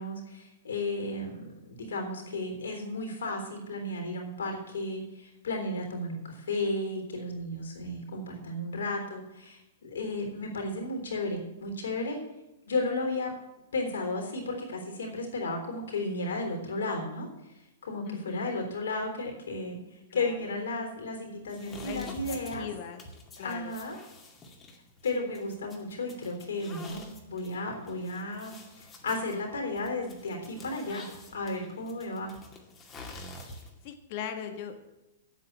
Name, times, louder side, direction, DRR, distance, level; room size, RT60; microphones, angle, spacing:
voice 1, 0.0-12.2 12.6-13.3 13.7-17.3 17.8-19.8 20.1-22.7 23.4-24.0 25.0-31.1 31.3-32.3, left 2 dB, 70° left, 2 dB, 3.5 m, -34 dB
voice 2, 18.0-18.5 20.1-20.6 21.8-23.0 23.4-23.8 33.8-34.8, left 8 dB, 45° left, 6 dB, 1.6 m, -39 dB
sound 1, 21.5-33.9, left 2 dB, 20° left, 2.3 m, -48 dB
8.5 x 8.4 x 8.7 m, 0.94 s
figure-of-eight pair, 110°, 0 cm